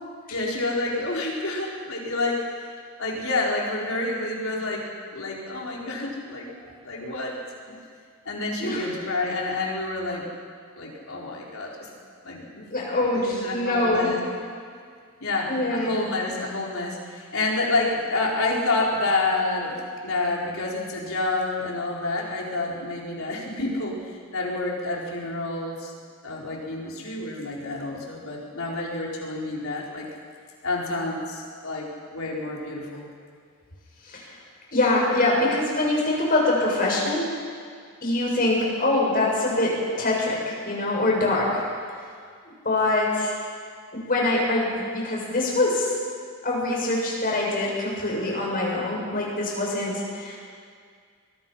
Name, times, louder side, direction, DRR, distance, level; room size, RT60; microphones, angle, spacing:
voice 1, 0.3-2.7 3.0-6.5 6.8-7.4 7.7-7.8 8.2-10.3 10.8-11.9 12.2-12.7 13.1-14.2 15.2-25.9 26.2-30.1 30.6-33.1, left 2 dB, 75° left, -2 dB, 4.7 m, -28 dB
voice 2, 12.7-14.1 15.5-16.0 34.1-34.4 34.7-37.3 38.0-41.6 42.6-43.3 43.9-45.9 46.4-50.4, left 2 dB, 45° left, -3 dB, 7.0 m, -24 dB
23.5 x 22.0 x 5.8 m, 2.1 s
head